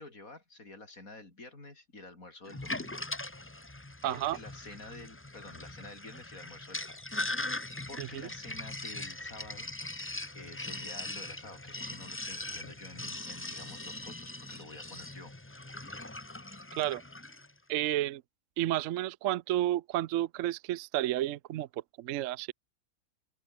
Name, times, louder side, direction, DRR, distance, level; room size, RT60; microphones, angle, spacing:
voice 1, 0.0-3.0 4.0-7.0 7.9-9.7 10.3-15.3, left 2 dB, 70° left, 5.4 m, -49 dB
Sink (filling or washing), 2.5-17.5, left 2 dB, 10° left, 0.8 m, -40 dB
voice 2, 4.0-4.4 8.0-8.1 16.8-17.0 17.7-18.2 18.6-21.7 22.0-22.5, right 14 dB, 70° right, 0.9 m, -31 dB
open air
omnidirectional pair, 1.5 m